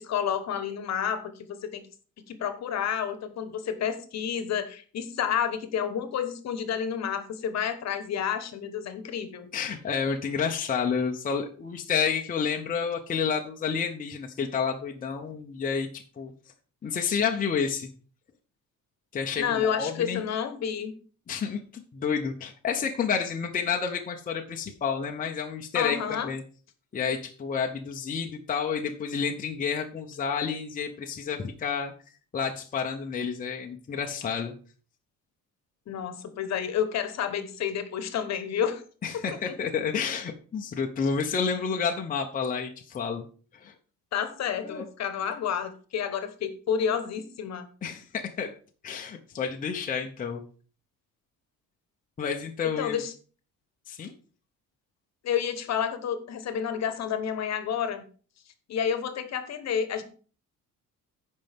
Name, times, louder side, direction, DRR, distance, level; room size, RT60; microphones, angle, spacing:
voice 1, 0.0-1.8 2.3-9.5 19.4-20.9 25.7-26.3 35.9-38.8 39.5-39.6 44.1-47.7 52.6-53.1 55.2-58.1 58.7-60.0, left 8 dB, 55° left, 10 dB, 1.1 m, -30 dB
voice 2, 9.5-16.3 16.8-17.9 19.1-20.2 21.3-21.6 21.9-26.4 26.9-31.9 32.3-34.5 39.0-43.2 43.5-43.7 44.6-44.8 47.8-48.5 48.8-50.4 52.2-53.0 53.9-54.1, left 6 dB, 25° left, 2 dB, 0.8 m, -30 dB
15.0 x 5.3 x 3.5 m, 0.40 s
cardioid pair, 175°, 32 cm